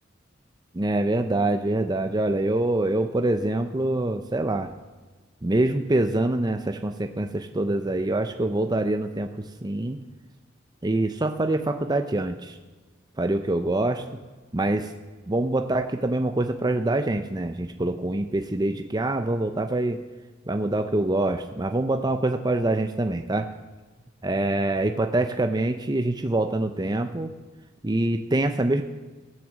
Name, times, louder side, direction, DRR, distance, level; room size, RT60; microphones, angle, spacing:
voice 1, 0.7-4.7 5.4-9.3 9.6-10.0 10.8-12.6 13.2-14.0 14.5-14.9 15.3-20.0 20.5-23.5 24.2-27.3 27.8-28.8, right 2 dB, 20° right, 6 dB, 0.6 m, -25 dB
15.5 x 9.3 x 7.3 m, 1.3 s
head